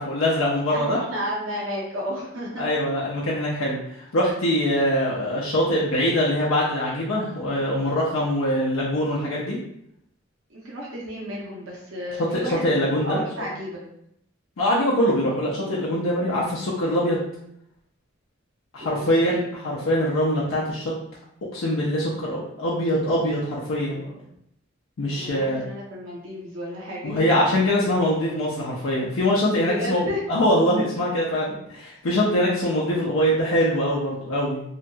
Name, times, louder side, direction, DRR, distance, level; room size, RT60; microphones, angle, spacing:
voice 1, 0.0-1.0 2.6-9.6 12.3-13.2 14.6-17.2 18.7-20.9 21.5-24.0 25.0-25.6 27.0-34.6, equal, 85° left, -6 dB, 0.5 m, -23 dB
voice 2, 0.7-2.7 10.5-13.8 18.8-19.5 23.8-24.3 25.1-27.5 29.6-30.2, equal, 80° right, -4 dB, 0.7 m, -33 dB
2.9 x 2.7 x 2.2 m, 0.76 s
head